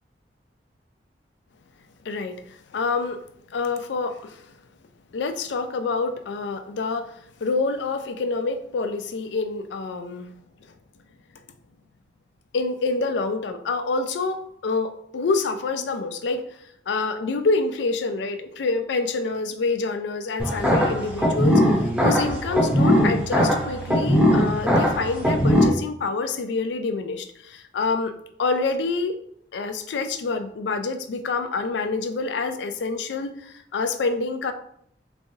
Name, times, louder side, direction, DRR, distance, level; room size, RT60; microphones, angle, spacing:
voice 1, 2.0-3.2 3.5-4.5 5.1-10.3 12.5-16.4 16.9-28.1 28.4-29.2 29.5-34.5, left 3 dB, 90° left, 8 dB, 0.4 m, -27 dB
sound 1, 20.4-25.6, equal, 10° right, 0.7 m, -20 dB
3.4 x 3.1 x 2.7 m, 0.68 s
head